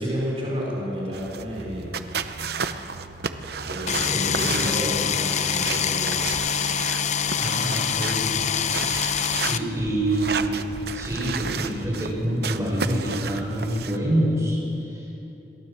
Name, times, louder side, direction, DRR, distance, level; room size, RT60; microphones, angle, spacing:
voice 1, 0.0-2.0 3.6-6.2, equal, 35° right, -4 dB, 4.5 m, -30 dB
sound 1, 1.1-14.0, right 5 dB, 60° right, 0.8 m, -33 dB
sound 2, 3.9-9.6, left 7 dB, 40° left, 0.6 m, -25 dB
voice 2, 4.0-4.7 7.4-8.3 9.3-10.6 10.9-15.1, right 1 dB, 15° right, -4 dB, 6.4 m, -26 dB
22.5 x 16.0 x 7.4 m, 3.0 s
head